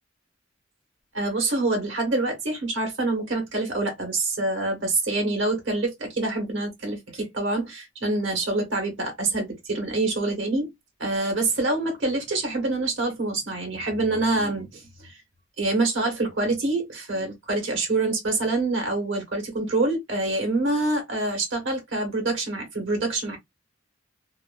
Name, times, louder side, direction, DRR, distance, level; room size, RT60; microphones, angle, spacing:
voice 1, 1.1-10.7 11.0-15.2 15.6-23.4, right 2 dB, 75° right, 1.4 m, -26 dB
2.9 x 2.3 x 2.4 m
head